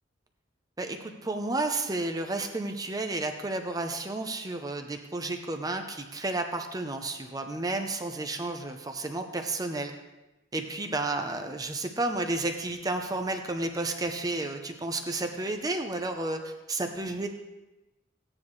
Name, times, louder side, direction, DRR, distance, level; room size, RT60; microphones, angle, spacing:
voice 1, 0.8-9.9 10.5-17.3, right 2 dB, 20° right, 5 dB, 0.7 m, -32 dB
15.0 x 9.7 x 3.2 m, 1.0 s
head